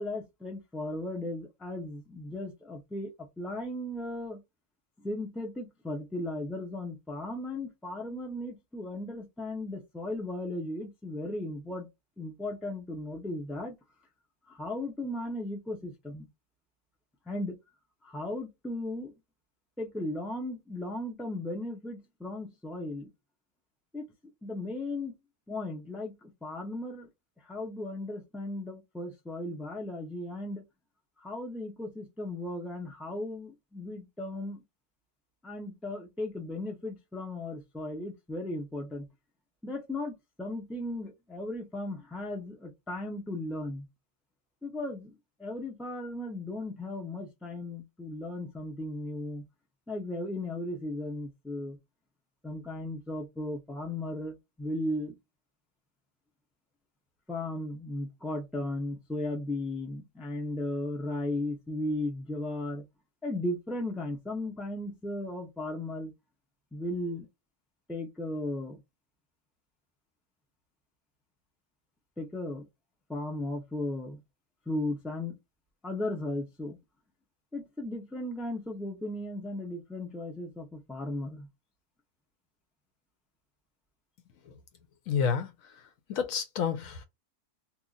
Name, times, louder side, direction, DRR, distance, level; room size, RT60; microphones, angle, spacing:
voice 1, 0.0-4.4 5.0-11.9 12.2-13.8 14.5-16.3 17.3-17.6 18.0-19.1 19.8-23.1 23.9-24.1 24.4-25.2 25.5-27.1 27.5-30.6 31.2-34.6 35.4-39.1 39.6-43.9 44.6-49.4 49.9-51.8 52.4-55.2 57.3-62.8 63.2-66.1 66.7-67.3 67.9-68.8 72.2-72.6 73.1-74.2 74.7-75.4 75.8-76.8 77.5-81.5, left 1 dB, ahead, 0.5 m, -36 dB
voice 2, 85.1-85.5 86.1-87.0, left 7 dB, 65° left, 1.0 m, -29 dB
2.9 x 2.4 x 3.9 m
omnidirectional pair, 1.6 m